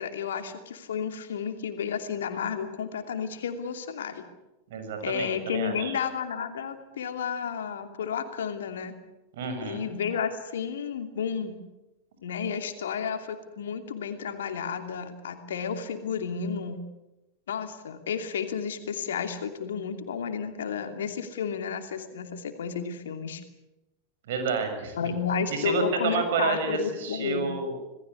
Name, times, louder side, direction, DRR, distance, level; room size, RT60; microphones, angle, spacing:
voice 1, 0.0-4.3 5.0-8.9 9.6-11.6 12.2-16.8 17.5-23.4 24.9-27.5, left 7 dB, 60° left, 6 dB, 2.8 m, -32 dB
voice 2, 4.7-6.0 9.3-9.8 24.3-25.0 25.5-27.8, right 4 dB, 55° right, 6 dB, 6.7 m, -29 dB
27.5 x 19.0 x 8.3 m, 1.0 s
figure-of-eight pair, 90°, 0 cm